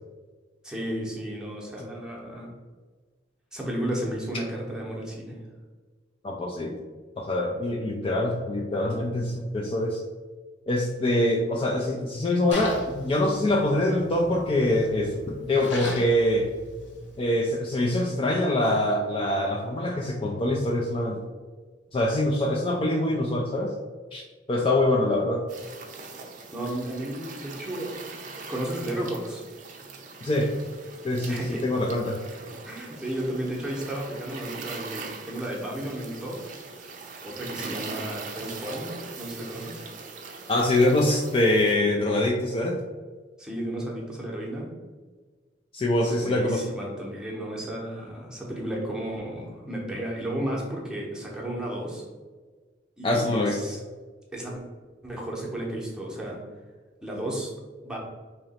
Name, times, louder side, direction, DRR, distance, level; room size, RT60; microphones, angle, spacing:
voice 1, 0.6-2.5 3.5-5.4 26.5-27.9 28.5-29.4 31.3-31.7 32.7-36.5 37.2-39.8 43.4-44.7 46.0-52.0 53.0-53.8 54.3-54.6 55.0-56.4 57.0-57.5 57.8-58.0, right 1 dB, 5° right, -4 dB, 0.8 m, -33 dB
voice 2, 6.2-6.8 7.2-10.0 10.7-16.5 17.2-21.2 21.9-23.7 24.1-24.2 24.5-25.4 30.2-30.5 31.0-32.2 40.5-42.8 45.7-46.6 53.0-53.6, left 1 dB, 30° left, -1 dB, 0.3 m, -24 dB
Splash splatter, 12.5-17.6, left 1 dB, 80° left, 1.2 m, -39 dB
sound 1, 25.5-41.8, right 4 dB, 45° right, 0.5 m, -41 dB
3.0 x 2.8 x 4.1 m, 1.4 s
head